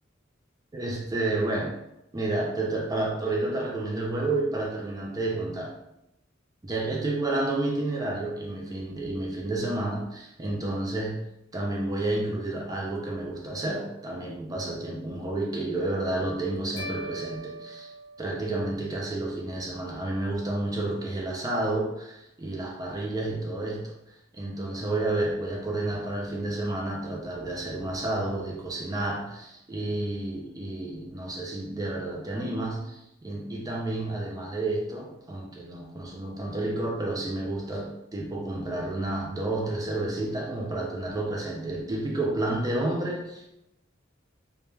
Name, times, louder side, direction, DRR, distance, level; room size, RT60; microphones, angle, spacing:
voice 1, 0.7-1.8 2.1-5.8 6.6-11.2 11.5-17.9 18.2-43.5, right 2 dB, 20° right, -1 dB, 0.4 m, -30 dB
sound 1, 16.8-19.0, equal, 60° left, 0.6 m, -41 dB
2.2 x 2.1 x 3.1 m, 0.84 s
head